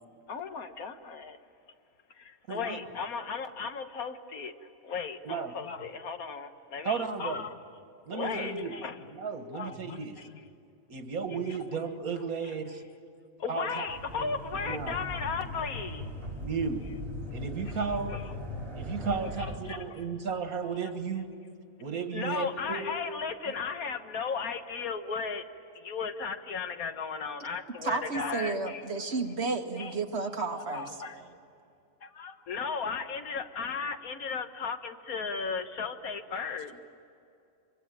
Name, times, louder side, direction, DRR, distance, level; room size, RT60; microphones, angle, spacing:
voice 1, 0.3-1.4 2.2-4.6 4.8-7.6 8.1-9.1 9.5-10.4 11.3-11.6 12.1-12.8 13.4-16.1 17.7-17.8 18.1-18.3 19.4-19.8 22.1-25.4 25.7-28.9 29.8-29.9 30.5-31.1 32.2-36.7, left 5 dB, 85° left, 8 dB, 1.7 m, -36 dB
voice 2, 2.5-2.8 5.3-5.6 6.9-7.5 8.1-8.8 9.1-10.1 10.9-12.7 13.5-13.9 14.2-14.3 14.7-15.0 16.4-16.8 17.3-18.2 18.8-21.3 21.8-22.9, right 5 dB, 85° right, 8 dB, 2.0 m, -34 dB
sound 1, 13.9-19.6, left 1 dB, 25° right, 3.6 m, -39 dB
voice 3, 27.8-30.9, right 4 dB, 50° right, 4 dB, 1.9 m, -32 dB
25.5 x 23.5 x 9.1 m, 2.5 s
omnidirectional pair, 1.5 m